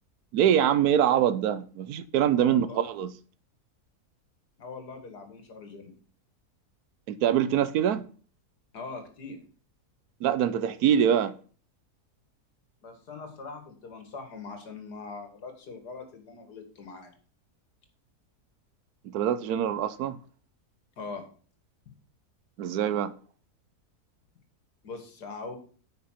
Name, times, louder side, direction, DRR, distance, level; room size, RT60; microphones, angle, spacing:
voice 1, 0.3-3.1 7.1-8.1 10.2-11.4 19.0-20.2 22.6-23.1, right 9 dB, 75° right, 1.1 m, -24 dB
voice 2, 2.4-2.8 4.6-5.9 8.7-9.4 12.8-17.2 21.0-21.2 24.8-25.6, left 4 dB, 85° left, 2.6 m, -41 dB
9.7 x 5.7 x 5.7 m
omnidirectional pair, 1.7 m